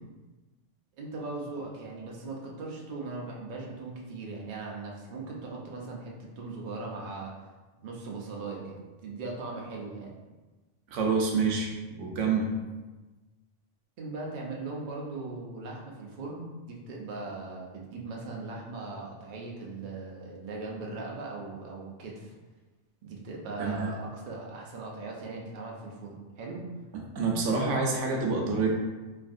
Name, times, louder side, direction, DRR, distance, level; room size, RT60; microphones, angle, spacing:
voice 1, 1.0-7.5 7.8-10.2 14.0-22.3 23.0-26.7, right 3 dB, 55° right, -2 dB, 0.6 m, -39 dB
voice 2, 10.9-11.7 12.0-12.5 23.6-23.9 26.9-28.7, right 4 dB, 80° right, 0 dB, 0.9 m, -27 dB
3.4 x 2.3 x 2.5 m, 1.2 s
omnidirectional pair, 1.2 m